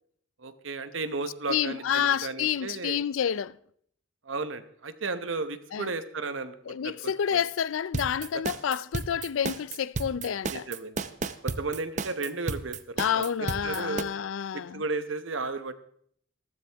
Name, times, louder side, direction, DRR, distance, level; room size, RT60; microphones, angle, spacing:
voice 1, 0.4-3.0 4.2-7.4 8.3-8.4 10.5-11.0 11.4-14.1 14.5-15.7, right 3 dB, 70° right, 1.0 m, -34 dB
voice 2, 1.5-3.6 5.7-5.9 6.7-10.6 13.0-14.8, left 8 dB, 80° left, 0.4 m, -29 dB
sound 1, 7.9-14.0, right 4 dB, 40° right, 0.6 m, -32 dB
14.5 x 13.0 x 3.4 m
head